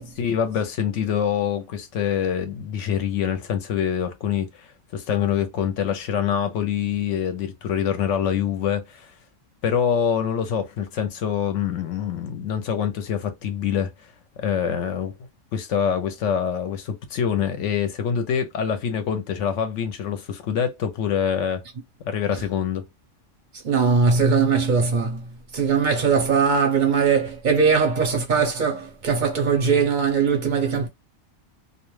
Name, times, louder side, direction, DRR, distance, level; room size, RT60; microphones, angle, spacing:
voice 1, 0.2-9.1 9.6-13.9 14.4-15.1 15.5-21.6 22.1-22.8, left 8 dB, 70° left, 0.9 m, -25 dB
voice 2, 23.6-25.2 25.5-30.9, right 5 dB, 50° right, 0.6 m, -20 dB
2.4 x 2.2 x 3.0 m
omnidirectional pair, 1.4 m